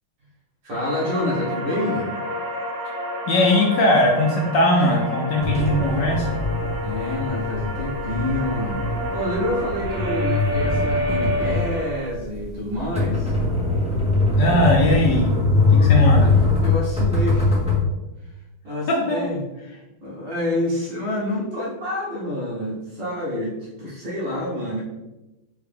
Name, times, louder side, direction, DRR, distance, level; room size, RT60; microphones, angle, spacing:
voice 1, 0.6-2.1 6.8-8.8 9.1-13.4 15.6-16.2 16.6-17.6 18.6-19.4 20.0-24.8, left 1 dB, 60° right, -6 dB, 2.1 m, -28 dB
sound 1, 0.7-12.1, equal, 80° right, 0.5 m, -29 dB
voice 2, 3.3-6.3 14.4-15.3 15.7-16.3 19.1-19.3, left 1 dB, 70° left, -2 dB, 1.2 m, -19 dB
sound 2, 5.4-17.8, left 3 dB, 5° right, 0.6 m, -22 dB
4.6 x 3.1 x 3.4 m, 1.0 s
omnidirectional pair, 2.4 m